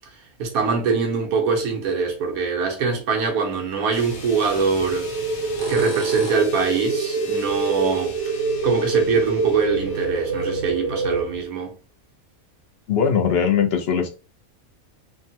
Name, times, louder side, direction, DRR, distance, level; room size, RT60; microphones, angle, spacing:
voice 1, 0.4-5.1 5.7-8.1 8.6-11.7, right 5 dB, 85° right, 1.3 m, -23 dB
sound 1, 3.9-11.4, left 1 dB, 80° left, 1.3 m, -38 dB
sound 2, 4.3-4.6 5.4-6.6 9.3-9.4 10.2-10.3 10.6-10.7 11.1-11.2, right 4 dB, 45° right, 0.3 m, -35 dB
sound 3, 4.8-11.2, right 3 dB, 65° right, 0.9 m, -26 dB
voice 2, 12.9-14.1, left 7 dB, 65° left, 0.6 m, -20 dB
3.4 x 2.1 x 2.7 m
omnidirectional pair, 1.5 m